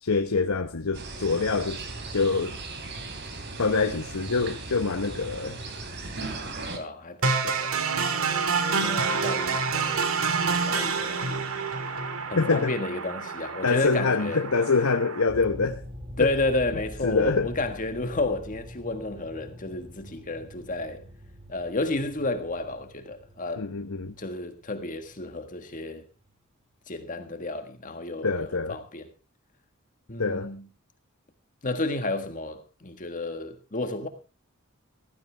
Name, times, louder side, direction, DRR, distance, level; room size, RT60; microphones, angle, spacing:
voice 1, 0.0-1.8 2.1-2.5 3.6-5.6 12.3-12.8 13.6-15.8 16.2-16.3 17.0-17.5 23.6-24.1 28.2-28.8 30.2-30.5, left 4 dB, 85° left, 1.0 m, -25 dB
sound 1, 0.9-6.8, right 3 dB, 55° right, 3.0 m, -37 dB
voice 2, 6.7-8.0 8.8-10.0 10.5-11.4 12.3-14.4 16.2-21.0 21.5-23.6 24.2-26.0 26.9-29.1 30.1-30.6 31.6-34.1, left 2 dB, 40° left, 1.6 m, -31 dB
sound 2, 7.2-15.2, right 5 dB, 80° right, 1.8 m, -28 dB
sound 3, 15.3-26.3, equal, 30° right, 2.3 m, -44 dB
15.5 x 15.0 x 3.4 m
head